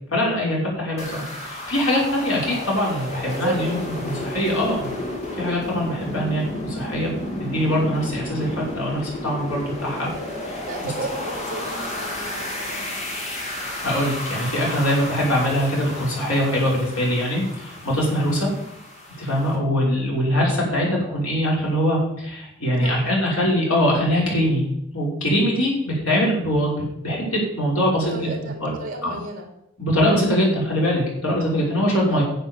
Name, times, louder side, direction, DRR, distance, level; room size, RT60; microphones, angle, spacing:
voice 1, 0.1-3.8 4.0-4.9 5.3-10.1 10.5-10.6 13.5-18.5 19.2-24.6 24.9-28.3 28.6-28.7 29.0-29.2 29.8-32.2, equal, 85° left, -4 dB, 5.7 m, -22 dB
sound 1, 1.0-19.6, left 1 dB, 30° left, 2.5 m, -32 dB
voice 2, 3.2-3.9 4.3-4.4 10.6-12.9 18.4-18.7 22.7-23.1 27.9-29.5 32.1-32.2, right 2 dB, 35° right, 3 dB, 3.0 m, -33 dB
10.5 x 7.9 x 7.3 m, 0.79 s
head